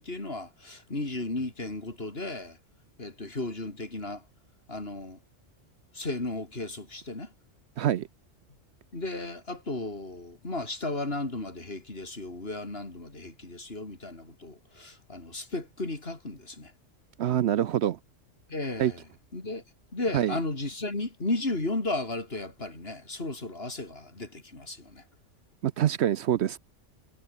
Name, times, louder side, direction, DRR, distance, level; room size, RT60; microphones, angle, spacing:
voice 1, 0.0-2.6 3.0-4.2 4.7-5.2 5.9-7.3 8.9-16.7 18.5-19.0 19.3-19.6 19.9-25.0, left 2 dB, 55° left, 4.2 m, -34 dB
voice 2, 7.8-8.1 17.2-18.0 18.8-18.9 20.1-20.3 25.6-26.6, right 11 dB, 65° right, 0.8 m, -25 dB
omnidirectional pair, 1.3 m